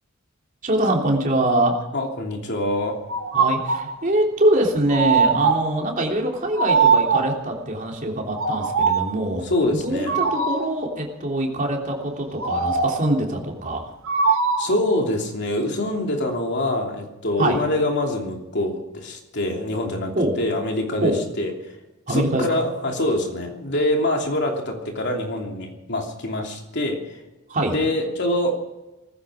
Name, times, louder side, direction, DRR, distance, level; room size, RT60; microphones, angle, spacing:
voice 1, 0.6-1.8 3.3-9.4 9.7-13.8 17.4-17.6 20.1-20.3 21.0-21.2 22.1-22.4 27.5-27.7, right 1 dB, 40° right, 0 dB, 3.3 m, -23 dB
voice 2, 1.9-3.0 9.4-10.3 14.6-21.8 22.1-27.2 27.7-28.5, left 1 dB, 55° left, 2 dB, 3.0 m, -25 dB
sound 1, 3.1-3.9 4.9-5.8 6.6-7.5 8.3-9.2 10.1-10.8 12.4-13.1 14.1-14.8, right 5 dB, 85° right, 1.9 m, -21 dB
18.5 x 15.5 x 5.0 m, 1.1 s
head